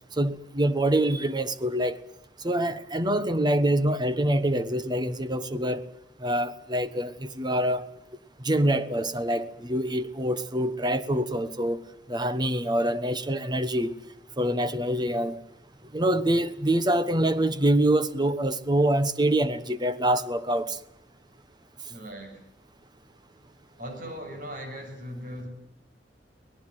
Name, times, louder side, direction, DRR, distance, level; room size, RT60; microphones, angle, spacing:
voice 1, 0.2-2.0 2.4-5.8 6.2-7.9 8.4-11.8 12.1-14.0 14.4-15.4 15.9-20.8, right 1 dB, 25° right, 1.2 m, -25 dB
voice 2, 21.9-22.4 23.8-25.5, equal, 50° right, 6.9 m, -39 dB
24.0 x 18.5 x 9.1 m
head